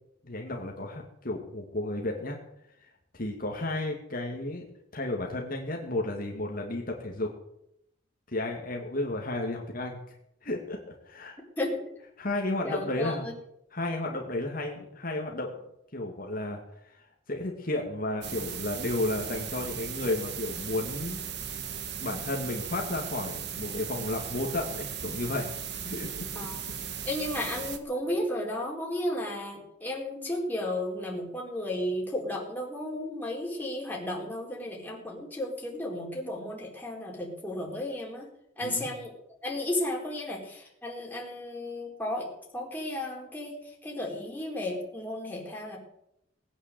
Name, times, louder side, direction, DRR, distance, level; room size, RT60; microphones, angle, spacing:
voice 1, 0.2-2.4 3.1-4.7 4.9-7.3 8.3-10.1 10.4-11.4 12.2-13.3 13.7-15.5 15.9-21.2 22.0-25.6 25.8-26.3 38.6-38.9, left 2 dB, 45° left, 0 dB, 2.3 m, -33 dB
voice 2, 12.6-13.3 26.3-26.6 27.0-38.3 38.6-39.1 39.4-42.3 42.5-43.5 43.8-45.8, left 1 dB, 10° left, -2 dB, 4.3 m, -33 dB
sound 1, 18.2-27.8, right 8 dB, 60° right, 1.7 m, -37 dB
19.5 x 9.2 x 7.7 m, 0.80 s
head